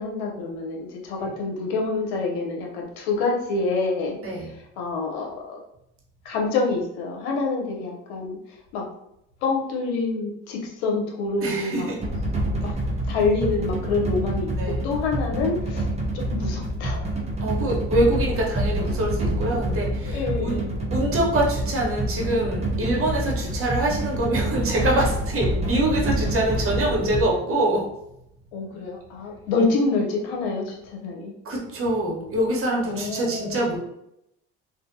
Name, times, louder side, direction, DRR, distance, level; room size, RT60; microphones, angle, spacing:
voice 1, 0.0-5.6 6.2-8.9 9.4-11.9 12.6-12.8 13.1-17.2 19.4-19.6 20.0-20.8 28.5-31.3 32.9-33.8, left 3 dB, 85° left, 0 dB, 0.8 m, -27 dB
voice 2, 11.4-12.0 14.5-14.8 17.4-20.6 20.9-27.9 31.4-33.8, right 1 dB, 45° right, -2 dB, 1.1 m, -25 dB
sound 1, 12.0-27.2, right 1 dB, 20° right, 0.7 m, -27 dB
2.6 x 2.5 x 2.6 m, 0.79 s
supercardioid pair, 70°, 31 cm